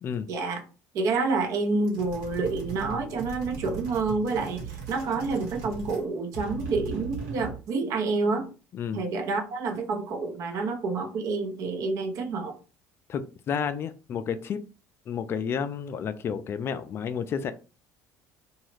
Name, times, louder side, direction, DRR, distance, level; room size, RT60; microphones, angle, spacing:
voice 1, 0.3-0.6 0.9-8.5 8.9-12.6, right 3 dB, 60° right, 0.7 m, -28 dB
sound 1, 1.8-6.1 6.3-7.6, right 5 dB, 85° right, 1.1 m, -38 dB
voice 2, 8.7-9.0 10.5-10.6 13.1-14.6 15.1-17.5, left 7 dB, 40° left, 0.3 m, -31 dB
2.9 x 2.3 x 3.2 m
cardioid pair, 110°, 6 cm